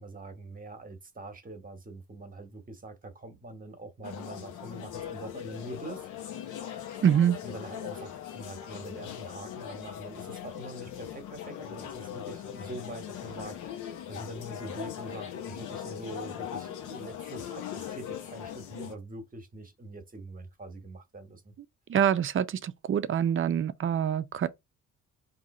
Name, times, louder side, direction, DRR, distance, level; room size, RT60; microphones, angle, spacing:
voice 1, 0.0-6.7 7.4-21.5, right 1 dB, 30° right, 1.1 m, -44 dB
sound 1, 4.0-19.0, left 10 dB, 80° left, 0.9 m, -40 dB
voice 2, 7.0-7.4 21.9-24.5, right 9 dB, 45° right, 0.5 m, -25 dB
3.6 x 2.8 x 4.1 m
cardioid pair, 90°, 30 cm